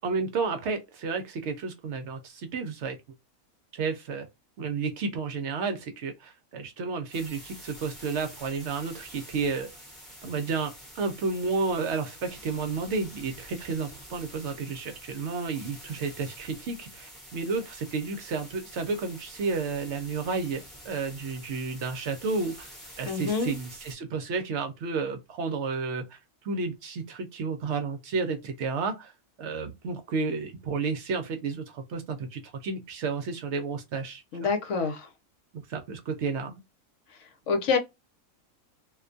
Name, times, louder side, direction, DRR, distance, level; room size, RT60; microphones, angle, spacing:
voice 1, 0.0-3.0 3.7-4.3 4.6-9.7 10.2-22.7 23.0-26.2 26.4-29.1 29.4-34.5 35.5-36.6, right 4 dB, 65° right, 0.8 m, -31 dB
sound 1, 7.1-23.9, equal, ahead, 0.8 m, -48 dB
voice 2, 23.0-23.5 34.3-35.1 37.5-37.8, left 5 dB, 70° left, 0.9 m, -26 dB
2.4 x 2.2 x 2.4 m
omnidirectional pair, 1.4 m